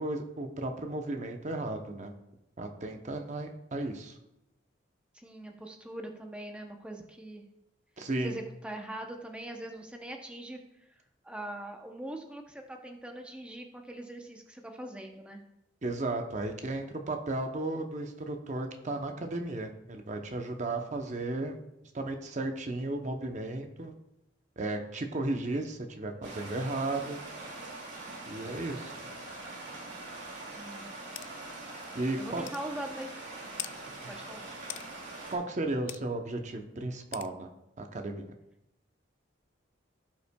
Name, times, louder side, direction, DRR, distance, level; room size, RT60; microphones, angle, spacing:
voice 1, 0.0-2.1 2.6-4.2 8.0-8.4 15.8-21.6 21.9-23.9 24.6-27.2 28.3-28.9 31.9-32.4 35.3-37.5 37.8-38.3, right 2 dB, 40° right, 5 dB, 0.7 m, -34 dB
voice 2, 5.1-7.4 8.2-10.6 11.2-15.4 30.6-30.9 32.2-33.1 34.1-34.5, right 1 dB, 5° right, 3 dB, 0.6 m, -42 dB
Stream, 26.2-35.3, right 2 dB, 75° right, 2.1 m, -43 dB
sound 1, 31.2-31.3 31.8-31.9 32.5-32.6 33.6-33.7 34.7-34.9 35.9-36.0 37.1-37.3, left 14 dB, 70° left, 0.3 m, -40 dB
16.0 x 5.5 x 2.2 m, 0.87 s
head